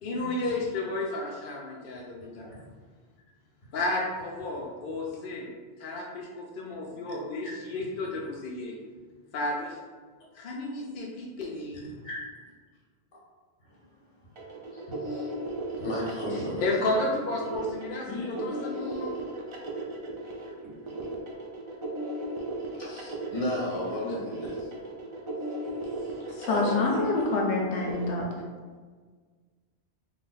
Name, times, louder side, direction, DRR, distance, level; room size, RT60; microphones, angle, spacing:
voice 1, 0.0-2.5 3.7-5.5 5.8-8.8 9.3-9.8 10.3-11.9 16.6-19.1, left 2 dB, 60° left, -3 dB, 0.6 m, -32 dB
sound 1, 14.4-28.1, right 1 dB, 50° right, 0.3 m, -36 dB
voice 2, 14.7-15.5 15.8-16.6 18.1-19.1 22.8-24.7 25.9-26.1 26.4-27.0, left 1 dB, 45° left, -7 dB, 1.2 m, -35 dB
voice 3, 26.3-28.3, left 3 dB, 85° left, 0 dB, 0.9 m, -27 dB
3.3 x 2.2 x 3.9 m, 1.5 s
omnidirectional pair, 1.2 m